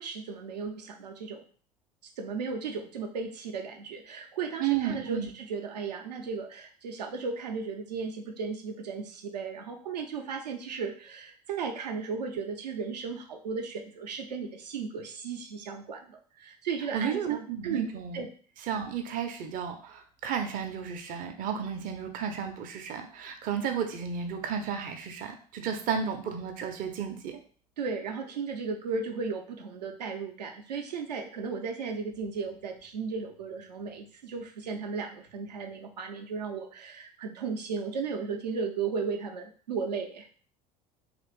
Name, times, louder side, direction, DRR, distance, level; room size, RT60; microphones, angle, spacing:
voice 1, 0.0-1.4 2.0-17.9 18.1-18.3 27.8-40.4, right 5 dB, 80° right, 4 dB, 0.6 m, -35 dB
voice 2, 4.6-5.3 16.9-18.2 18.7-27.4, right 8 dB, 40° right, 4 dB, 0.6 m, -33 dB
3.0 x 2.4 x 3.1 m, 0.44 s
figure-of-eight pair, 65°, 21 cm